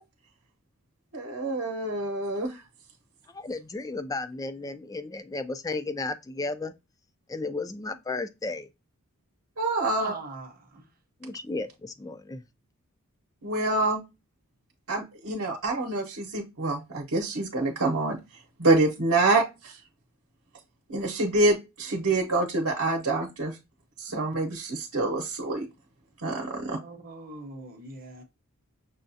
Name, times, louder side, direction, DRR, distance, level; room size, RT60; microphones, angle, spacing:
voice 1, 1.1-2.6 9.6-10.1 13.4-14.0 14.9-18.2 18.6-19.8 20.9-23.6 24.0-25.7 26.2-26.8, right 2 dB, 70° right, 0.9 m, -26 dB
voice 2, 3.3-6.7 7.3-8.7 11.2-12.4, left 3 dB, 15° left, 0.3 m, -34 dB
voice 3, 10.0-10.9 26.7-28.2, right 3 dB, 40° right, 0.8 m, -41 dB
6.2 x 2.3 x 2.6 m
head